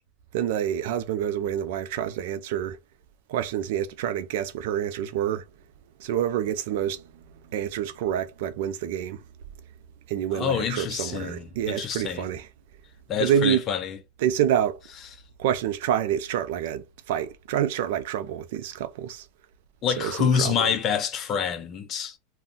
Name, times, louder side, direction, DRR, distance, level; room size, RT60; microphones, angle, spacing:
voice 1, 0.3-2.8 3.3-5.5 6.0-7.2 7.5-9.2 10.1-12.5 13.2-13.6 14.2-14.8 15.4-19.3 20.0-20.7, right 10 dB, 70° right, 0.5 m, -27 dB
voice 2, 10.3-12.3 13.1-14.0 19.8-22.2, left 7 dB, 35° left, 0.6 m, -27 dB
2.5 x 2.2 x 3.6 m
supercardioid pair, 135°, 0 cm